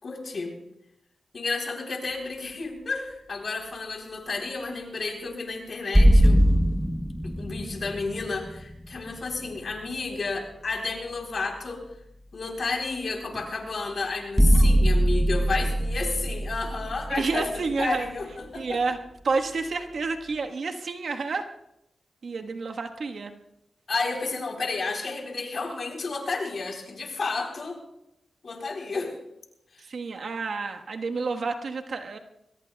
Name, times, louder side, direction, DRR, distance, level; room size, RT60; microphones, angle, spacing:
voice 1, 0.0-0.5 1.3-6.4 7.2-11.8 12.3-18.8 23.9-27.8 28.4-29.1 29.7-29.8, left 3 dB, 60° left, 1 dB, 3.7 m, -31 dB
sound 1, 5.9-9.7 13.3-13.5 14.4-18.2, equal, ahead, 1.0 m, -22 dB
voice 2, 17.1-18.1 18.5-19.0 19.2-21.5 22.2-23.3 29.8-32.2, right 4 dB, 70° right, 4 dB, 1.3 m, -29 dB
22.5 x 20.5 x 2.3 m, 0.82 s
cardioid pair, 60°, 0 cm